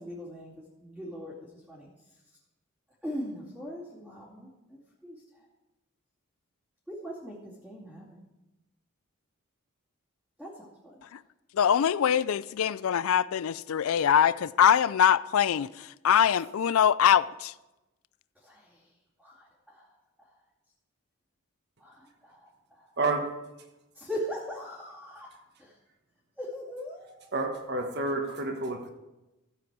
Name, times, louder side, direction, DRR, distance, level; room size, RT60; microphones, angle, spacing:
voice 1, 0.0-1.9 3.0-5.2 6.9-8.3 10.4-11.0 18.4-18.9 19.2-19.9 20.2-20.3 21.8-23.0 23.9-25.3 25.6-25.8 26.4-27.3, equal, 5° left, 2.4 m, -41 dB
voice 2, 11.5-17.5, left 8 dB, 75° left, 0.4 m, -23 dB
voice 3, 23.0-23.3 27.3-28.9, right 3 dB, 50° right, 1.4 m, -29 dB
14.5 x 7.8 x 4.8 m
head